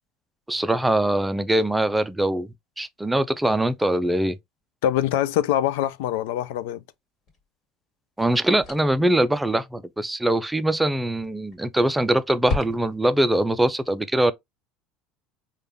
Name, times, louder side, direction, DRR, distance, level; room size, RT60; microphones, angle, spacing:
voice 1, 0.5-2.5 2.8-4.4 8.2-14.3, right 1 dB, 10° right, 0.4 m, -22 dB
voice 2, 4.8-6.8, left 11 dB, 80° left, 0.3 m, -24 dB
sound 1, 7.3-7.4 8.6-9.1 11.2-11.6 11.9-12.0 12.4-13.2, left 3 dB, 50° left, 1.7 m, -32 dB
3.8 x 2.3 x 3.3 m
supercardioid pair, 105°, 0 cm